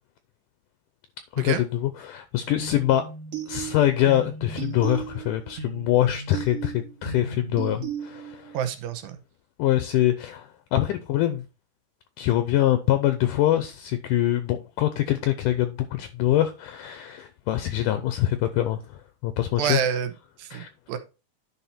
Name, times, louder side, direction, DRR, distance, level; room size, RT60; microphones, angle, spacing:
voice 1, 1.3-3.0 3.5-6.7 7.0-8.6 9.6-11.4 12.2-18.8 19.2-19.8 20.5-20.7, left 13 dB, 75° left, 2.0 m, -24 dB
sound 1, 2.6-8.5, right 7 dB, 55° right, 3.2 m, -35 dB
voice 2, 8.5-9.2 19.6-20.1 20.4-21.0, right 9 dB, 75° right, 2.5 m, -28 dB
10.5 x 4.3 x 4.2 m
omnidirectional pair, 4.2 m